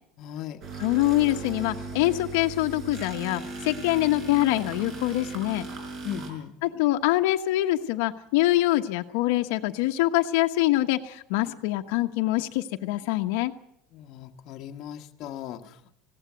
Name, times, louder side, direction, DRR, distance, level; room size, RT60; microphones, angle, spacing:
voice 1, 0.2-0.6 6.0-6.6 13.9-15.9, left 10 dB, 40° left, 4 dB, 1.3 m, -38 dB
sound 1, 0.6-6.3, right 3 dB, 35° right, 5.0 m, -38 dB
voice 2, 0.8-5.7 6.6-13.5, left 16 dB, 70° left, 5 dB, 1.1 m, -24 dB
20.0 x 16.5 x 9.2 m, 0.75 s
cardioid pair, 175°, 0 cm